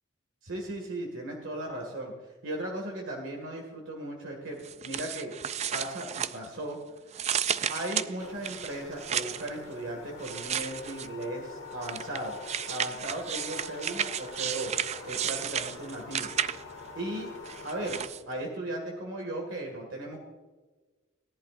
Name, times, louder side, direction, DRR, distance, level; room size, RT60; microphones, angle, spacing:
voice 1, 0.4-2.1 2.4-4.6 4.8-5.3 5.7-6.8 7.7-12.4 12.7-14.7 15.0-16.3 17.0-17.3 17.6-18.0 18.3-20.2, right 1 dB, 70° right, 0 dB, 2.0 m, -36 dB
sound 1, 4.6-6.7 7.1-9.5 10.2-11.2 11.8-16.8 17.5-18.2, right 9 dB, 35° right, 0.4 m, -33 dB
sound 2, 8.2-18.0, left 4 dB, 70° left, 1.5 m, -45 dB
17.5 x 11.0 x 2.5 m, 1.3 s
head